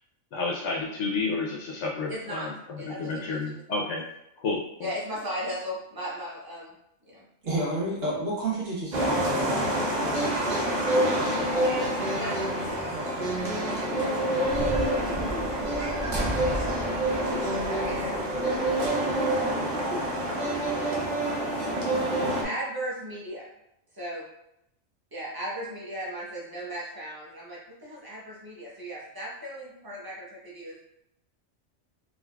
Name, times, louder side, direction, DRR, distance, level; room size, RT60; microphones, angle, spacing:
voice 1, 0.3-4.0 4.4-4.9, left 3 dB, 65° left, -2 dB, 0.8 m, -31 dB
voice 2, 2.1-2.5 2.8-3.6 4.8-6.7 7.1-7.2 11.2-12.9 13.6-13.8 15.1-15.2 17.7-19.7 22.4-23.5 23.9-24.3 25.1-30.8, equal, 20° right, -7 dB, 0.9 m, -37 dB
voice 3, 7.4-10.3 12.9-13.0, right 2 dB, 70° right, -7 dB, 1.5 m, -31 dB
sound 1, 8.9-22.4, right 1 dB, 50° right, 0.6 m, -27 dB
3.8 x 2.4 x 2.2 m, 0.79 s
omnidirectional pair, 1.4 m